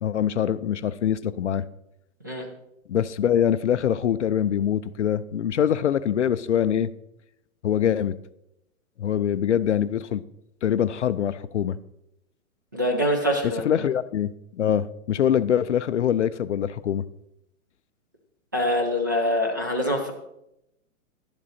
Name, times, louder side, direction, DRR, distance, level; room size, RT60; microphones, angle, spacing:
voice 1, 0.0-1.6 2.9-6.9 7.6-8.2 9.0-10.2 10.6-11.8 13.6-17.0, left 9 dB, 55° left, 15 dB, 0.5 m, -24 dB
voice 2, 12.7-13.6 18.5-20.1, equal, 15° right, 1 dB, 0.5 m, -24 dB
12.0 x 10.5 x 4.2 m, 0.82 s
hypercardioid pair, 170°, 43 cm